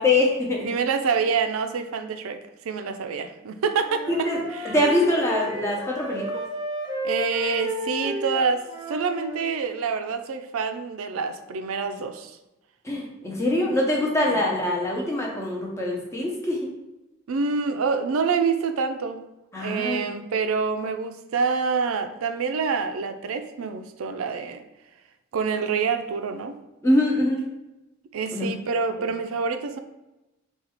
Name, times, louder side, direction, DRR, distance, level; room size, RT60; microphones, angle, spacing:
voice 1, 0.0-0.7 4.2-4.4 4.7-6.3 12.8-16.7 19.5-20.0 26.8-27.4 28.3-28.6, left 1 dB, 15° left, -2 dB, 0.7 m, -23 dB
voice 2, 0.6-4.8 7.0-8.6 8.9-12.4 13.6-13.7 14.3-14.4 17.3-19.2 19.6-24.6 25.3-26.6 28.1-29.8, right 5 dB, 85° right, 8 dB, 0.4 m, -27 dB
Wind instrument woodwind instrument, 3.8-9.5, equal, 20° right, 0.9 m, -33 dB
3.9 x 2.3 x 4.3 m, 0.98 s
head